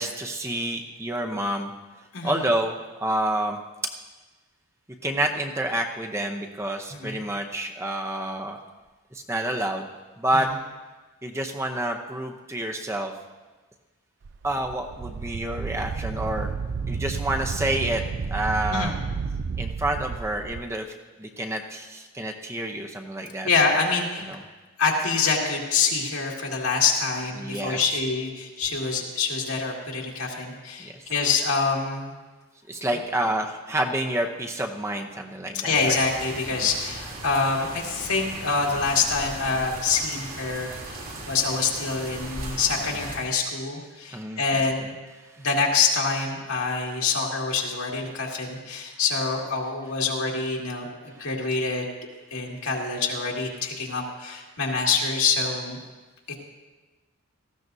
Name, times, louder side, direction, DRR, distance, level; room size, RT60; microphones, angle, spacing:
voice 1, 0.0-1.7 2.2-2.8 3.0-3.6 5.0-8.6 9.1-9.9 10.2-10.5 11.2-13.1 14.4-16.5 16.9-18.0 18.3-18.9 19.6-20.9 21.2-23.5 24.2-24.4 27.4-27.8 30.8-31.0 32.7-36.0 44.1-44.6, right 1 dB, 10° right, 3 dB, 0.7 m, -28 dB
voice 2, 6.9-7.2 18.7-19.0 23.5-24.4 24.8-32.1 35.5-41.0 41.3-45.0 45.4-51.8 52.3-55.8, left 4 dB, 80° left, -1 dB, 2.3 m, -26 dB
Wind, 14.2-20.6, right 5 dB, 50° right, 0.3 m, -31 dB
sound 1, 35.7-43.2, right 2 dB, 85° right, 3.1 m, -38 dB
18.5 x 15.0 x 2.7 m, 1.2 s
head